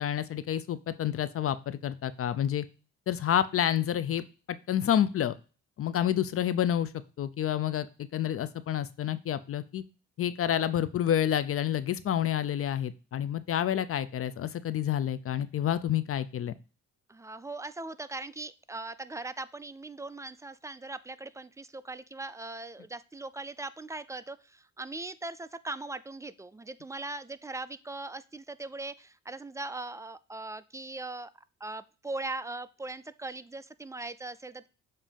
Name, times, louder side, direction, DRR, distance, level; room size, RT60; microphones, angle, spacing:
voice 1, 0.0-2.7 3.1-5.3 5.8-6.9 7.2-7.9 8.1-9.8 10.2-16.5, left 10 dB, 50° left, 14 dB, 0.5 m, -29 dB
voice 2, 17.1-31.3 31.6-34.7, right 2 dB, 10° right, 14 dB, 0.4 m, -40 dB
7.3 x 2.8 x 5.1 m, 0.34 s
cardioid pair, 90°, 30 cm